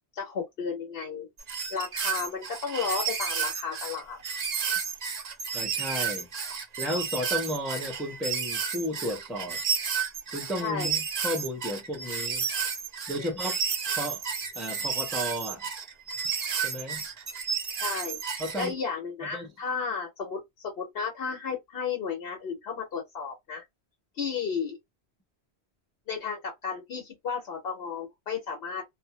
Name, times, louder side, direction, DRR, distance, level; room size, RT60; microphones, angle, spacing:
voice 1, 0.1-1.3 1.7-4.2 10.6-10.9 13.2-13.3 17.8-23.6 24.1-24.8 26.1-28.8, left 6 dB, 65° left, 1.0 m, -33 dB
sound 1, 1.4-18.7, right 6 dB, 50° right, 0.5 m, -32 dB
voice 2, 5.5-6.3 6.8-9.6 10.3-12.4 13.1-13.6 13.9-14.2 14.5-15.6 16.6-17.0 18.4-18.7 19.3-19.5, left 1 dB, ahead, 0.4 m, -33 dB
2.3 x 2.0 x 2.7 m
omnidirectional pair, 1.1 m